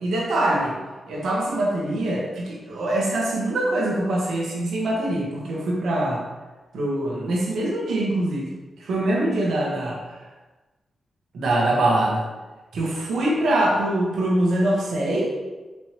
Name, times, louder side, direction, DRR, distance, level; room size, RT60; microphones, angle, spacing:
voice 1, 0.0-0.7 1.1-6.2 6.7-8.5 8.8-10.2 11.3-12.2 12.7-15.3, right 1 dB, 85° right, -3 dB, 1.0 m, -23 dB
4.3 x 3.1 x 3.0 m, 1.2 s
cardioid pair, 75°, 0 cm